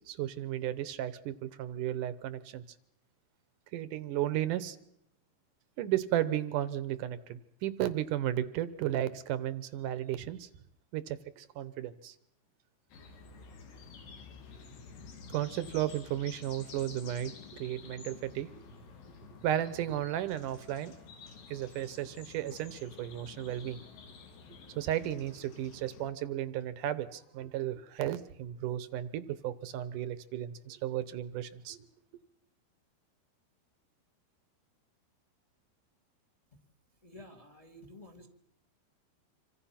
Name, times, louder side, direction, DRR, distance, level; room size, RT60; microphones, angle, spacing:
voice 1, 0.1-2.6 3.7-4.8 5.8-10.5 10.9-12.2 15.3-18.6 19.4-20.9 21.5-23.8 24.8-31.9, right 12 dB, 70° right, 14 dB, 2.1 m, -34 dB
sound 1, 12.9-26.1, left 5 dB, 85° left, 4.6 m, -51 dB
voice 2, 37.0-38.3, left 1 dB, 20° left, 6 dB, 0.8 m, -52 dB
26.5 x 25.5 x 5.9 m, 0.75 s
omnidirectional pair, 4.8 m